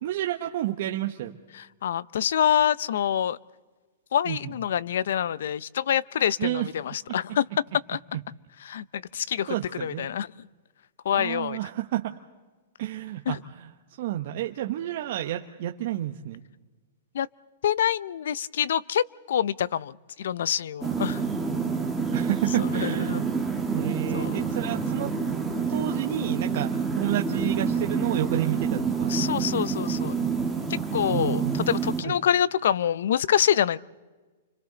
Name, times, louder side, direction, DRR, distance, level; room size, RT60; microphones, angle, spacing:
voice 1, 0.0-1.3 4.3-4.5 6.4-6.7 7.1-7.2 9.5-10.1 11.1-12.1 12.8-13.4 14.0-16.4 22.1-23.2 23.7-25.1 25.7-29.2 31.0-31.7 32.0-32.1, right 13 dB, 55° right, 3 dB, 1.0 m, -30 dB
voice 2, 1.5-3.4 4.1-8.0 8.6-10.5 11.0-11.6 13.3-13.4 17.1-17.3 17.6-21.2 22.6-23.5 24.1-24.4 29.1-30.1 30.7-33.8, left 9 dB, 70° left, 21 dB, 0.6 m, -26 dB
sound 1, 20.8-32.0, right 5 dB, ahead, 1.8 m, -28 dB
29.5 x 25.5 x 4.0 m, 1.3 s
hypercardioid pair, 150°, 0 cm